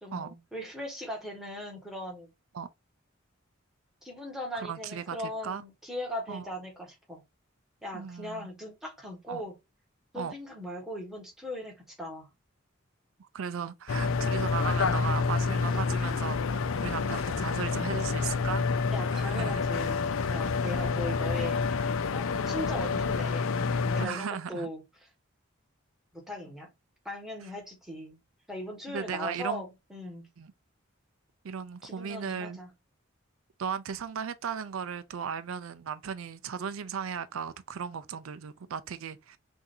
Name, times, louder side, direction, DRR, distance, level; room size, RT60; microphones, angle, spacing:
voice 1, 0.0-2.3 4.0-7.2 7.8-9.5 10.1-12.3 18.9-21.6 22.1-23.5 23.9-24.8 26.1-26.7 27.0-28.2 28.5-30.3 31.8-32.7, left 1 dB, ahead, 1.5 m, -39 dB
voice 2, 4.5-5.6 6.3-6.5 7.9-8.5 9.3-9.4 10.2-10.3 13.2-18.7 19.1-19.6 22.3-22.5 24.0-24.7 28.9-29.6 30.4-30.5 31.4-32.6 33.6-39.4, right 7 dB, 80° right, 0.4 m, -36 dB
sound 1, 13.9-24.1, left 4 dB, 80° left, 0.5 m, -28 dB
6.0 x 2.6 x 2.7 m
head